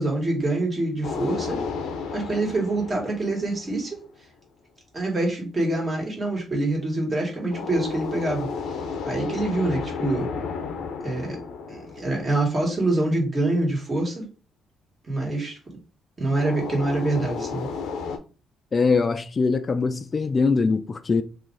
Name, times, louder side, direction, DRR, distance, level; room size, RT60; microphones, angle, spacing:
voice 1, 0.0-1.6 2.1-4.0 4.9-10.3 11.0-11.4 11.7-14.3 15.0-15.6 16.2-17.7, right 2 dB, 35° right, 1.7 m, -25 dB
sound 1, 1.0-4.1 7.5-12.9 16.4-18.2, left 5 dB, 85° left, 0.6 m, -33 dB
voice 2, 18.7-21.2, left 4 dB, 35° left, 0.3 m, -22 dB
2.8 x 2.5 x 3.8 m
cardioid pair, 90°, 0 cm